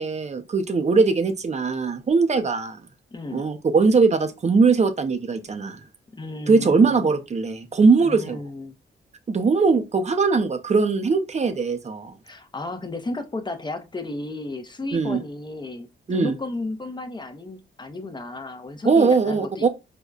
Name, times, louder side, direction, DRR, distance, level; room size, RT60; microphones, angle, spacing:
voice 1, 0.0-2.8 3.3-5.8 6.5-8.4 9.3-12.1 14.9-15.2 16.1-16.3 18.8-19.7, right 4 dB, 35° right, 0.5 m, -20 dB
voice 2, 3.1-3.5 6.1-7.2 8.0-8.7 12.2-19.7, left 2 dB, 25° left, 0.5 m, -33 dB
5.0 x 2.2 x 2.3 m
wide cardioid pair, 115°, 20 cm